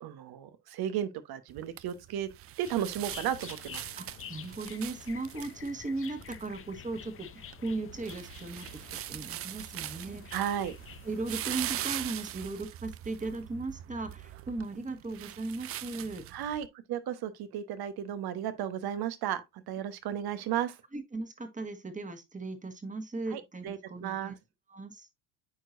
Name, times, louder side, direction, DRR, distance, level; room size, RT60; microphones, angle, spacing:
voice 1, 0.0-2.3 2.6-3.9 10.3-10.7 16.3-20.8 23.3-24.4, right 10 dB, 50° right, 1.2 m, -34 dB
sound 1, 1.5-16.7, right 13 dB, 30° right, 0.4 m, -42 dB
sound 2, 2.7-12.0, left 8 dB, 25° left, 0.7 m, -49 dB
voice 2, 4.0-10.4 11.0-16.3 20.9-24.3 24.7-25.1, right 3 dB, 15° right, 1.6 m, -37 dB
8.9 x 4.6 x 2.6 m
hypercardioid pair, 85°, 48 cm